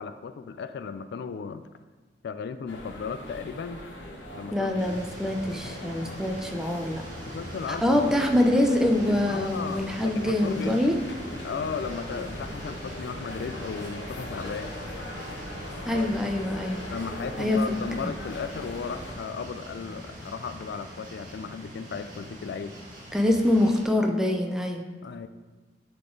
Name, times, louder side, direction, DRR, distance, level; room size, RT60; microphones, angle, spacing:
voice 1, 0.0-1.6 2.2-3.8 4.3-5.0 7.3-8.2 9.1-10.8 11.4-14.7 15.9-16.2 16.9-22.8 25.0-25.3, left 5 dB, 65° left, 10 dB, 0.3 m, -35 dB
sound 1, 2.7-19.2, left 1 dB, 90° left, 1.1 m, -40 dB
voice 2, 4.5-7.0 7.7-11.0 15.9-16.8 17.4-17.6 23.1-24.8, left 1 dB, 5° right, 2 dB, 0.6 m, -24 dB
sound 2, 4.8-23.8, equal, 50° right, 2.0 m, -42 dB
10.5 x 4.0 x 3.8 m, 1.3 s
head